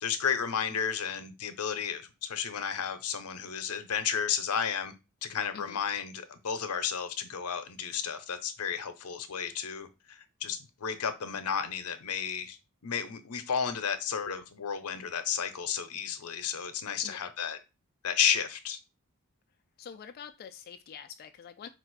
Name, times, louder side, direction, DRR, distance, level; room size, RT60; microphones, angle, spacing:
voice 1, 0.0-4.9 5.2-12.6 12.8-17.6 18.0-18.8, left 7 dB, 85° left, 0.7 m, -32 dB
voice 2, 19.8-21.7, left 7 dB, 45° left, 0.3 m, -46 dB
4.3 x 2.4 x 4.6 m
head